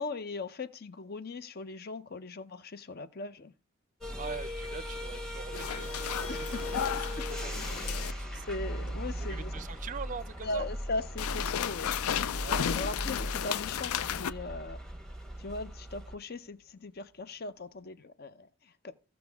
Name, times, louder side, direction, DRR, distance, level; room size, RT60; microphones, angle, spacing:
voice 1, 0.0-3.5 4.3-4.4 6.3-7.3 8.5-9.5 10.4-11.9 12.7-14.8 15.4-18.9, left 3 dB, 45° left, 0.6 m, -39 dB
sound 1, 4.0-16.1, equal, 5° left, 1.2 m, -38 dB
Thunder / Rain, 4.2-17.8, equal, 60° left, 2.6 m, -57 dB
voice 2, 4.2-8.5 9.2-10.7 12.4-12.9, right 5 dB, 35° right, 0.4 m, -44 dB
sound 2, 5.5-8.1 11.2-14.3, left 9 dB, 85° left, 0.4 m, -33 dB
16.0 x 6.1 x 3.5 m
head